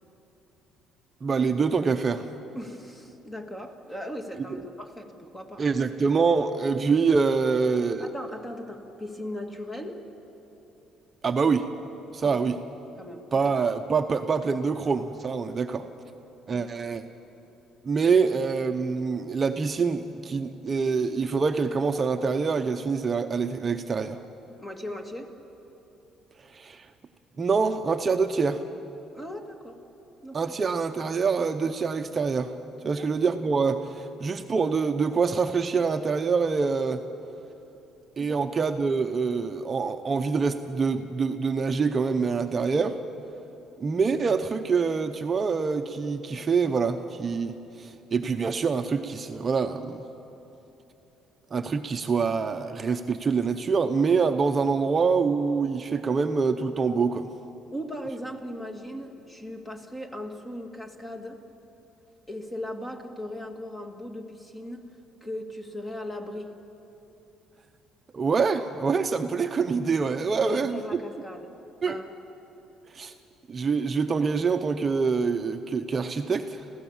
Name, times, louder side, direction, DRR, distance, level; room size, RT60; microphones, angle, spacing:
voice 1, 1.2-2.3 4.5-4.6 5.6-8.1 11.2-11.7 12.1-12.6 13.3-15.9 16.5-17.0 17.8-24.2 26.5-26.9 27.4-28.6 30.3-32.5 32.8-37.0 38.2-43.0 43.8-50.0 51.5-57.3 68.1-70.8 71.8-72.0 72.9-73.1 73.5-76.7, right 5 dB, 30° right, 7 dB, 0.8 m, -25 dB
voice 2, 2.6-5.6 7.5-7.6 8.0-10.1 12.2-12.5 13.0-13.5 16.5-16.7 24.6-25.4 29.1-29.8 30.2-30.6 32.8-33.1 38.2-38.4 57.7-61.4 62.3-64.9 65.2-66.5 70.4-71.5 71.9-72.1, left 1 dB, 15° left, 5 dB, 2.0 m, -38 dB
27.5 x 16.0 x 7.3 m, 3.0 s
cardioid pair, 115°, 0 cm